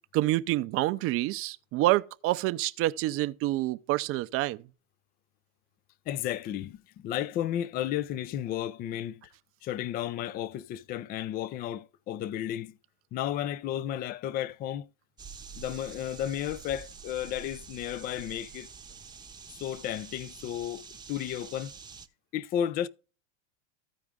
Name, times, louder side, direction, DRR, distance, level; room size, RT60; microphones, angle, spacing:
voice 1, 0.1-4.6, right 17 dB, 40° right, 0.5 m, -27 dB
voice 2, 6.1-9.3 9.6-12.8 13.1-14.9 15.5-18.7 19.5-21.7 22.3-22.9, left 11 dB, 25° left, 0.4 m, -33 dB
sound 1, 15.2-22.1, right 6 dB, 10° right, 0.8 m, -47 dB
14.5 x 5.0 x 3.5 m
supercardioid pair, 120°, 37 cm